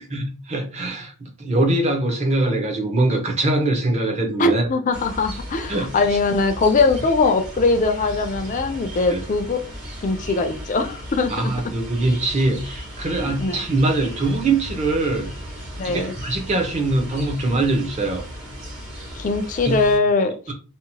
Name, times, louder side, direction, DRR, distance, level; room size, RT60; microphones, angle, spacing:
voice 1, 0.0-4.6 5.7-5.9 9.1-9.2 11.3-15.3 15.8-18.2 19.6-19.8 20.5-20.6, right 2 dB, 30° right, 0.6 m, -22 dB
voice 2, 4.4-9.6 10.0-11.7 13.2-13.6 15.8-16.1 19.1-20.5, left 3 dB, 35° left, 0.3 m, -21 dB
sound 1, 4.9-20.0, equal, 55° right, 1.4 m, -36 dB
2.8 x 2.0 x 2.8 m
head